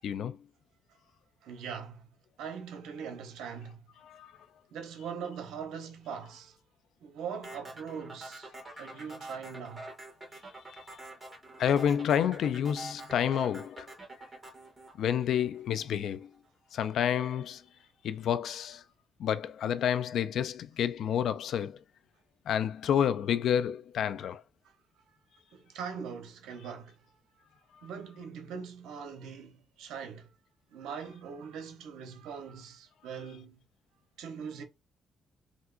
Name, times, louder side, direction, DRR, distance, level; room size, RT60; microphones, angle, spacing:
voice 1, 0.0-0.4 4.1-4.3 8.6-9.0 10.7-10.8 11.6-13.9 15.0-16.3 16.7-17.6 18.0-18.8 19.2-21.8 22.5-24.4 27.8-27.9, left 9 dB, 70° left, 0.3 m, -29 dB
voice 2, 1.4-2.1 2.4-3.8 4.7-6.6 7.0-8.5 8.8-9.8 25.5-27.0 27.8-30.3 30.7-33.6 34.2-34.6, right 6 dB, 90° right, 0.7 m, -41 dB
sound 1, 7.4-15.8, right 2 dB, 20° right, 1.7 m, -46 dB
3.4 x 2.7 x 2.4 m
cardioid pair, 90°, 0 cm